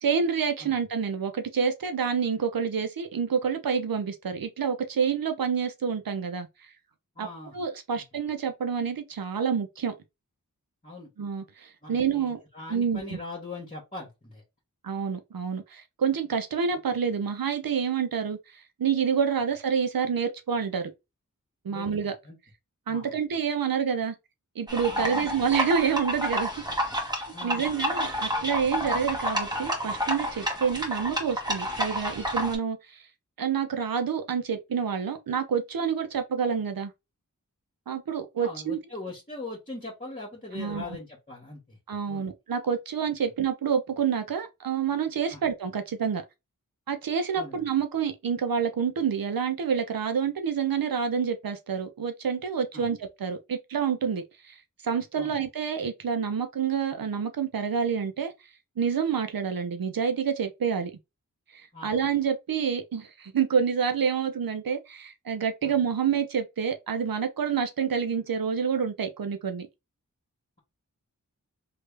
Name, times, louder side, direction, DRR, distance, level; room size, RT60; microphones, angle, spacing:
voice 1, 0.0-6.7 7.2-7.3 7.5-9.9 11.2-12.4 12.7-13.2 14.8-20.9 21.6-22.1 22.9-24.1 24.6-26.5 27.4-33.0 33.4-36.9 37.9-38.8 40.5-40.8 41.9-46.2 46.9-54.6 54.8-58.3 58.8-60.9 61.5-69.7, right 6 dB, 85° right, 0.6 m, -28 dB
voice 2, 7.1-7.6 7.9-8.0 10.8-11.1 11.8-14.4 21.7-22.4 22.9-23.2 24.9-25.3 27.3-27.7 28.8-28.9 38.4-41.8 42.1-42.3 45.3-45.4 47.3-47.6 52.7-52.9 55.2-55.3 61.7-61.9 65.6-65.7, left 2 dB, 25° left, 1.4 m, -41 dB
sound 1, 24.7-32.6, equal, 10° right, 1.4 m, -30 dB
3.2 x 2.4 x 3.2 m
wide cardioid pair, 60°, 34 cm